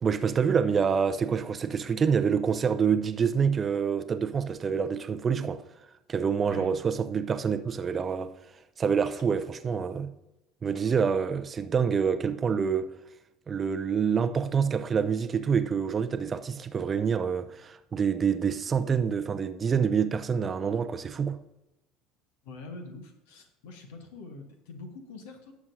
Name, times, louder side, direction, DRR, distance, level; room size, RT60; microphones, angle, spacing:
voice 1, 0.0-5.6 6.1-8.3 8.8-10.1 10.6-12.9 13.5-21.4, right 6 dB, 30° right, 0.6 m, -27 dB
voice 2, 22.4-25.5, left 3 dB, 65° left, 1.3 m, -44 dB
18.0 x 7.2 x 2.6 m
figure-of-eight pair, 65°, 0 cm